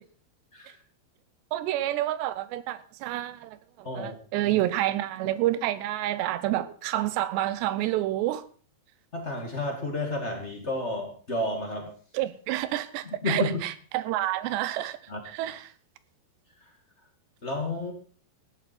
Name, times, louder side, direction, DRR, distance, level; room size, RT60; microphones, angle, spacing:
voice 1, 1.5-8.4 12.1-15.0 15.3-15.6, right 14 dB, 85° right, 3.1 m, -29 dB
voice 2, 3.8-4.5 6.5-6.6 9.1-11.9 13.0-13.6 15.1-15.2 16.6-16.7 17.4-17.9, left 2 dB, 40° left, 0.9 m, -31 dB
16.0 x 11.5 x 4.3 m
omnidirectional pair, 4.9 m